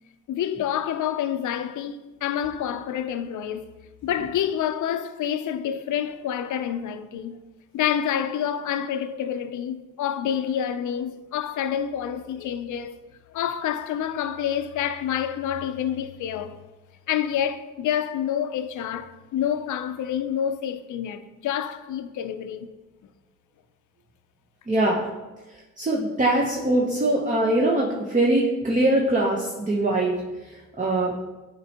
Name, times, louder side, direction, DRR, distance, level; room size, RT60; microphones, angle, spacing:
voice 1, 0.3-3.7 4.0-7.4 7.7-12.9 13.3-16.6 17.1-22.7, left 9 dB, 70° left, 0.5 m, -28 dB
voice 2, 24.7-25.1 25.8-30.2 30.8-31.1, right 1 dB, 25° right, 0.8 m, -22 dB
9.4 x 4.4 x 2.9 m
cardioid pair, 95°, 31 cm